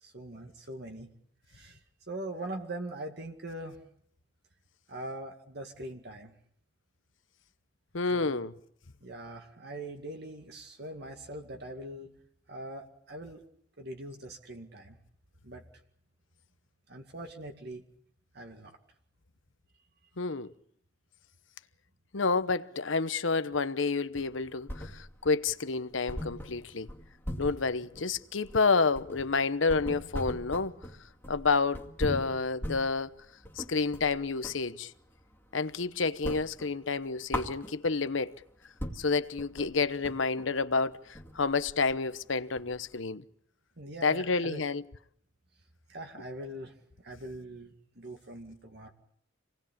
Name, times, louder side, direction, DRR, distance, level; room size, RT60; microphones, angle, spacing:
voice 1, 0.0-1.1 1.5-1.8 2.1-3.8 4.9-6.3 8.1-8.5 9.0-12.1 12.5-13.4 13.8-15.0 15.4-15.6 16.9-17.8 18.3-18.8 43.8-44.6 45.9-46.7 47.0-48.9, right 1 dB, 55° right, 2.1 m, -42 dB
voice 2, 7.9-8.5 20.2-20.5 22.1-26.9 27.4-30.7 31.3-33.1 33.6-34.9 35.5-38.4 38.9-43.2 44.0-44.8, left 4 dB, 80° left, 1.0 m, -29 dB
sound 1, 24.1-25.3 25.6-25.7 26.1-34.7 35.0-35.8 36.1-38.1 38.5-38.6 38.8-42.9, equal, 10° left, 2.4 m, -40 dB
27.0 x 19.0 x 8.6 m
head